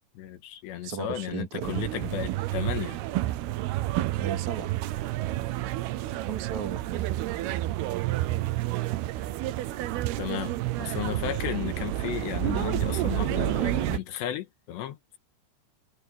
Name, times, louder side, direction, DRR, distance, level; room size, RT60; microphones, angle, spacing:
voice 1, 0.2-3.0 10.2-15.2, left 11 dB, 80° left, 3.6 m, -34 dB
voice 2, 0.8-1.8 4.2-4.7 6.1-7.1, right 7 dB, 50° right, 2.9 m, -36 dB
sound 1, 1.6-14.0, right 15 dB, 75° right, 2.7 m, -29 dB
omnidirectional pair, 5.1 m